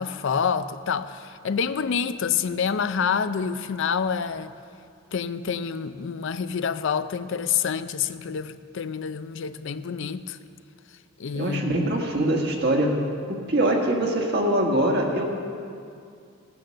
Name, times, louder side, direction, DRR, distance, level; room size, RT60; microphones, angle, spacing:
voice 1, 0.0-4.5 5.1-10.4 11.2-11.8, left 6 dB, 65° left, 0.5 m, -27 dB
voice 2, 11.4-13.0 13.3-15.2, right 1 dB, 55° right, 1.7 m, -23 dB
14.5 x 9.2 x 6.5 m
head